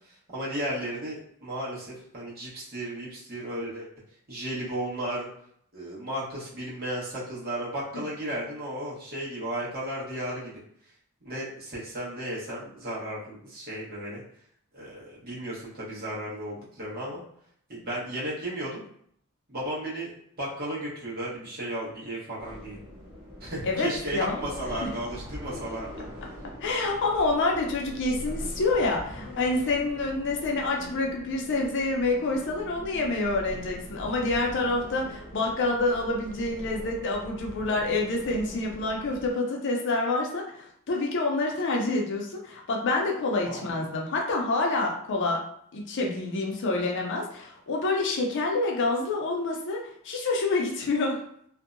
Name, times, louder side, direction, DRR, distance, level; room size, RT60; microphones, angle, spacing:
voice 1, 0.3-1.9 2.1-3.9 4.3-5.3 5.7-10.6 11.2-14.2 14.7-17.2 17.7-18.8 19.5-22.8 23.4-26.0 43.5-43.6, right 1 dB, 45° right, -8 dB, 1.1 m, -34 dB
sound 1, 22.4-39.3, equal, 25° right, 0.9 m, -42 dB
voice 2, 23.6-24.4 24.8-24.9 26.6-45.4 45.7-51.2, left 2 dB, 55° left, 0 dB, 0.5 m, -27 dB
2.6 x 2.1 x 2.5 m, 0.67 s
head